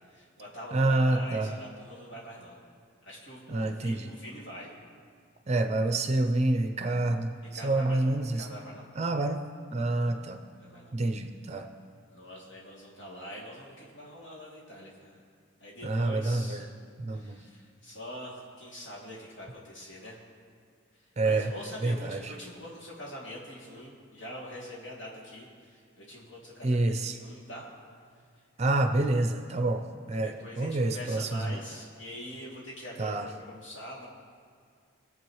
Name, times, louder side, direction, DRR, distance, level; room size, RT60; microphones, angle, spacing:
voice 1, 0.1-2.6 3.0-4.7 7.5-8.8 9.8-10.0 10.6-10.9 12.1-15.2 15.6-16.6 17.1-20.2 21.2-27.7 30.2-34.1, equal, 65° left, -6 dB, 2.6 m, -44 dB
voice 2, 0.7-1.6 3.5-4.1 5.5-8.5 9.0-9.4 9.7-10.4 10.9-11.7 15.8-16.7 17.0-17.4 21.2-21.5 21.8-22.3 26.6-27.2 28.6-31.6 33.0-33.3, right 2 dB, 30° right, 6 dB, 0.5 m, -28 dB
22.0 x 7.7 x 3.1 m, 2.1 s
head